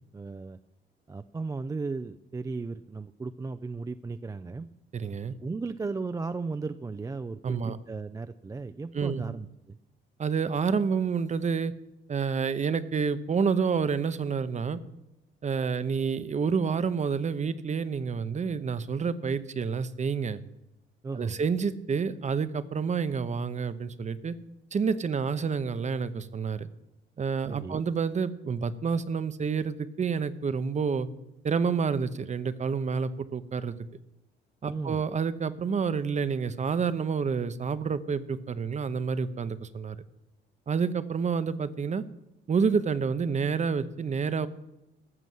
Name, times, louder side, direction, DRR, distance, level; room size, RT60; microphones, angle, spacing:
voice 1, 0.1-0.6 1.1-4.7 5.4-7.6 7.9-9.8 21.0-21.4 27.5-27.8 34.7-35.0, right 4 dB, 15° right, 11 dB, 0.4 m, -35 dB
voice 2, 4.9-5.4 7.4-7.8 8.9-9.3 10.2-11.7 12.1-14.8 15.4-20.4 21.1-24.3 24.7-26.7 27.2-31.1 31.4-33.8 34.6-40.0 40.7-42.0 42.5-44.5, right 5 dB, 35° right, 14 dB, 0.8 m, -28 dB
13.5 x 6.1 x 7.8 m, 0.93 s
cardioid pair, 90°, 20 cm